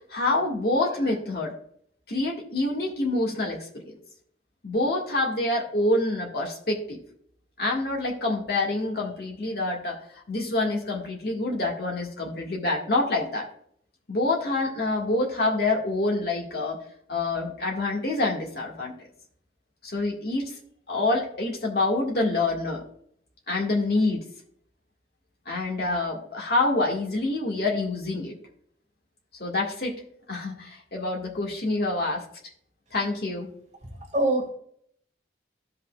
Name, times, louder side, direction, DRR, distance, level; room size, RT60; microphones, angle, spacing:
voice 1, 0.1-1.5 2.1-3.9 4.6-7.0 7.6-10.0 10.3-13.5 14.1-16.8 17.1-19.0 19.8-20.5 20.9-22.8 23.5-24.2 25.4-28.4 29.4-30.0 30.3-32.2 32.9-33.5, left 2 dB, 55° left, -2 dB, 1.8 m, -26 dB
voice 2, 33.9-34.5, right 1 dB, 40° right, 1 dB, 2.0 m, -25 dB
15.0 x 5.5 x 2.4 m, 0.65 s
head